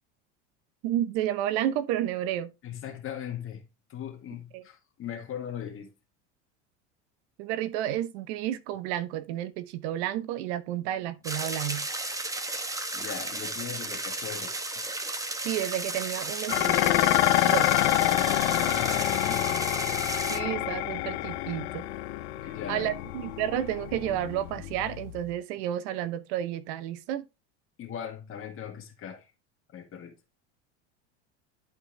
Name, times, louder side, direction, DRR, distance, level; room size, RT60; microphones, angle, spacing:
voice 1, 0.8-2.5 4.5-4.6 7.4-11.9 15.4-16.9 17.5-17.7 20.3-21.8 22.7-27.2, right 12 dB, 65° right, 1.0 m, -31 dB
voice 2, 2.6-5.9 12.9-14.5 17.7-19.6 22.4-22.9 27.8-29.3 29.7-30.1, left 9 dB, 35° left, 1.7 m, -39 dB
sound 1, 11.2-20.4, right 2 dB, 10° right, 1.1 m, -34 dB
Dishes pots and pans, 16.5-25.3, left 16 dB, 70° left, 0.8 m, -27 dB
11.0 x 4.5 x 3.4 m
supercardioid pair, 115°, 35 cm